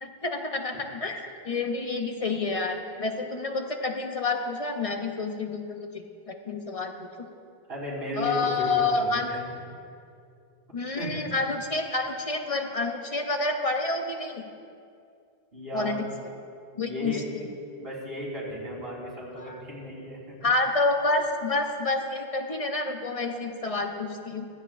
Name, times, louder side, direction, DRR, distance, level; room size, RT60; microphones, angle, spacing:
voice 1, 0.0-7.3 8.2-9.3 10.7-14.5 15.7-16.1 16.8-17.5 19.4-19.6 20.4-24.5, left 3 dB, 40° left, 4 dB, 0.7 m, -29 dB
voice 2, 7.7-9.4 11.0-11.2 15.5-16.1 16.7-17.2 17.8-20.4, equal, 65° right, -6 dB, 3.8 m, -35 dB
24.5 x 8.8 x 2.5 m, 2.5 s
omnidirectional pair, 1.0 m